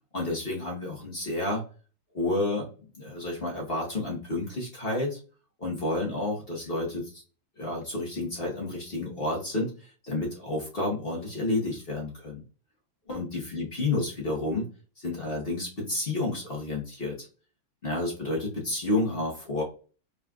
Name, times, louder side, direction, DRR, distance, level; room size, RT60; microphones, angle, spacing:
voice 1, 0.1-1.6 2.1-5.2 5.6-7.2 7.6-12.4 13.1-14.7 15.0-17.3 17.8-19.6, left 2 dB, 35° left, -2 dB, 1.2 m, -30 dB
5.4 x 3.9 x 2.4 m, 0.38 s
omnidirectional pair, 2.1 m